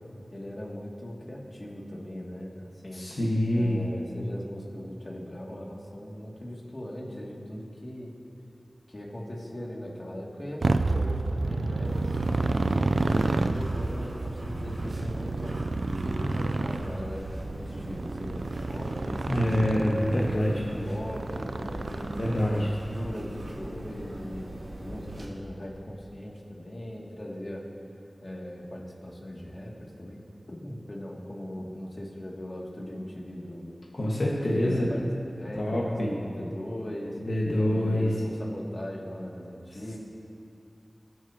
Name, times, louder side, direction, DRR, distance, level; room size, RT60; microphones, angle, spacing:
voice 1, 0.3-3.0 3.5-8.1 8.9-15.5 15.9-19.7 20.3-24.5 24.8-27.6 28.2-30.2 30.5-33.8 34.5-35.0 35.3-37.2 37.6-40.0, left 1 dB, 45° left, -3 dB, 2.4 m, -39 dB
voice 2, 2.9-3.8 19.3-20.5 22.2-22.7 33.9-34.9 35.5-36.1 37.3-38.1, left 1 dB, 70° left, -4 dB, 1.6 m, -26 dB
Motorcycle, 10.6-22.7, right 3 dB, 90° right, 0.4 m, -30 dB
sound 1, 11.8-25.3, right 1 dB, 70° right, 1.9 m, -40 dB
21.5 x 9.5 x 2.9 m, 2.6 s
wide cardioid pair, 45°, 0 cm